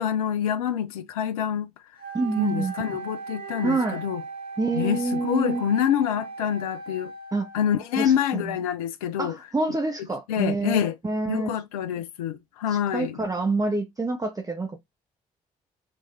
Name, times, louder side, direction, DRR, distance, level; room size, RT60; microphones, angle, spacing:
voice 1, 0.0-1.7 2.4-4.2 4.7-7.1 7.5-9.3 10.3-10.9 11.3-13.2, left 9 dB, 75° left, 0.4 m, -26 dB
Wind instrument woodwind instrument, 2.0-7.9, right 5 dB, 60° right, 1.8 m, -38 dB
voice 2, 2.1-2.7 3.6-4.0 4.6-5.6 7.3-7.5 8.0-8.6 9.2-11.6 12.7-14.8, right 3 dB, 20° right, 0.9 m, -27 dB
6.0 x 3.0 x 2.7 m
figure-of-eight pair, 40°, 19 cm